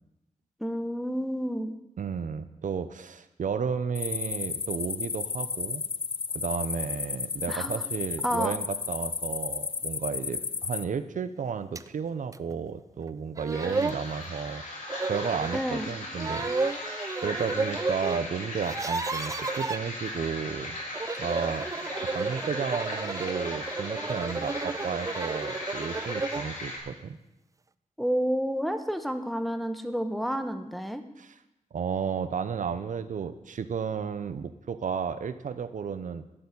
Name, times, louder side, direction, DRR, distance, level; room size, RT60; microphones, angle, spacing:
voice 1, 0.6-1.7 7.5-7.8 8.2-8.5 15.5-15.9 28.0-31.0, equal, ahead, 8 dB, 1.1 m, -30 dB
voice 2, 2.0-5.8 6.3-14.6 15.1-16.9 17.2-20.8 21.1-21.7 22.0-27.2 31.2-31.4 31.7-36.2, right 6 dB, 75° right, 12 dB, 0.8 m, -33 dB
sound 1, 3.9-10.8, left 5 dB, 40° left, 0.5 m, -33 dB
sound 2, 11.8-11.9 12.3-12.4 13.1-13.2 13.4-14.0 14.9-15.6 16.2-18.2 18.5-19.8 20.8-26.5, right 3 dB, 25° right, 0.4 m, -32 dB
sound 3, 13.5-26.8, left 1 dB, 80° left, 4.4 m, -38 dB
12.5 x 7.0 x 9.8 m, 0.90 s
wide cardioid pair, 105°, 13 cm